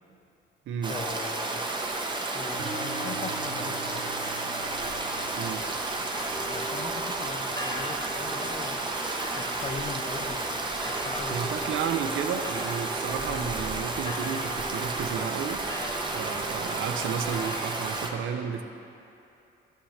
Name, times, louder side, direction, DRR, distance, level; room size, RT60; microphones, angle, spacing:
Stream, 0.8-18.1, right 2 dB, 25° right, 0.9 m, -32 dB
voice 1, 0.9-1.7 2.3-4.1 6.5-8.9 9.4-11.8 13.2-13.5, left 4 dB, 30° left, 8 dB, 0.5 m, -40 dB
sound 1, 2.6-10.5, right 3 dB, 55° right, 1.3 m, -45 dB
sound 2, 6.1-17.7, right 1 dB, 15° left, 1.4 m, -41 dB
voice 2, 11.3-15.6 16.1-18.6, right 7 dB, 75° right, 8 dB, 0.6 m, -32 dB
13.0 x 6.4 x 3.2 m, 2.7 s
cardioid pair, 90°, 20 cm